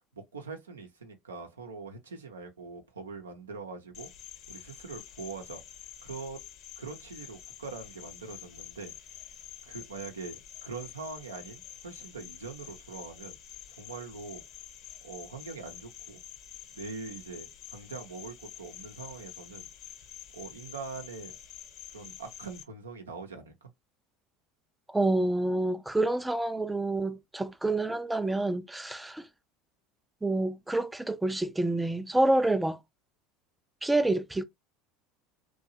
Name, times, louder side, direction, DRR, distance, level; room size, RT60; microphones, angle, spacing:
voice 1, 0.1-4.1 4.5-5.6 6.0-6.4 6.8-8.9 9.6-13.4 13.8-14.4 15.0-16.2 16.7-19.7 20.3-21.4 21.9-23.7, right 4 dB, 90° right, 0.6 m, -42 dB
Cricket, 3.9-22.6, left 11 dB, 55° left, 0.7 m, -48 dB
voice 2, 24.9-29.3 30.2-32.8 33.8-34.4, right 2 dB, 10° right, 0.3 m, -28 dB
2.8 x 2.2 x 2.6 m
hypercardioid pair, 75°, 0 cm